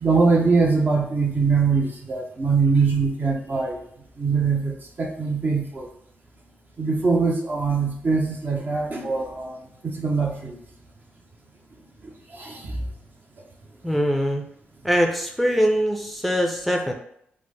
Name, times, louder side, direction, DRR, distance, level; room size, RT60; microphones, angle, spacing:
voice 1, 0.0-3.8 4.2-5.9 6.8-9.6 9.8-10.6 12.3-12.8, right 4 dB, 45° right, 0 dB, 0.7 m, -22 dB
voice 2, 13.8-14.4 14.8-16.9, equal, ahead, 2 dB, 0.5 m, -22 dB
3.2 x 2.1 x 3.2 m, 0.71 s
supercardioid pair, 50°, 4 cm